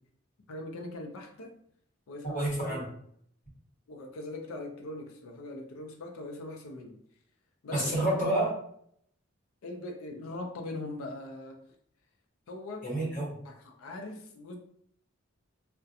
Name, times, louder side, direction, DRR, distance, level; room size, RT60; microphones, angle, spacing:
voice 1, 0.5-1.5 2.1-2.4 2.7-2.8 3.9-7.0 7.6-7.9 9.6-11.6 12.5-12.9 13.4-14.6, left 2 dB, 90° left, 3 dB, 0.4 m, -41 dB
voice 2, 2.2-2.9 7.7-8.5 12.8-13.4, right 1 dB, 40° left, -6 dB, 1.2 m, -29 dB
2.4 x 2.1 x 2.7 m, 0.68 s
head